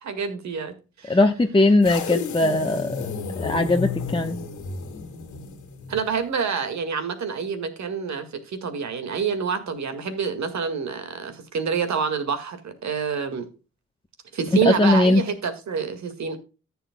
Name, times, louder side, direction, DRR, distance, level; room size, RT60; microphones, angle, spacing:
voice 1, 0.0-1.2 5.9-13.5 14.3-16.4, right 6 dB, 65° right, 1.9 m, -27 dB
voice 2, 1.1-3.1 3.4-4.4 14.6-15.2, left 2 dB, 15° left, 1.0 m, -19 dB
sound 1, 1.8-6.1, left 5 dB, 75° left, 1.7 m, -32 dB
14.0 x 8.0 x 2.2 m
hypercardioid pair, 40°, 30 cm